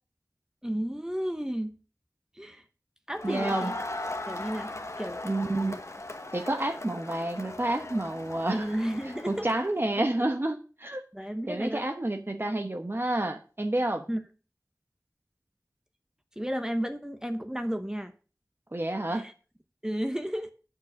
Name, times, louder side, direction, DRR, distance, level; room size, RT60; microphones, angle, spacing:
voice 1, 0.6-1.8 2.3-2.6 3.1-3.8 4.1-5.8 8.5-9.5 9.9-10.0 11.1-11.8 14.1-14.2 16.4-18.1 19.1-19.3 19.8-20.5, equal, 10° right, 7 dB, 1.0 m, -33 dB
Crowd, 3.1-9.7, left 2 dB, 50° left, 1.2 m, -38 dB
voice 2, 3.2-3.7 5.2-5.8 6.3-8.7 9.3-11.0 11.5-14.0 18.7-19.3, right 1 dB, 35° right, 6 dB, 1.0 m, -29 dB
8.4 x 6.9 x 6.2 m, 0.36 s
wide cardioid pair, 55°, 6 cm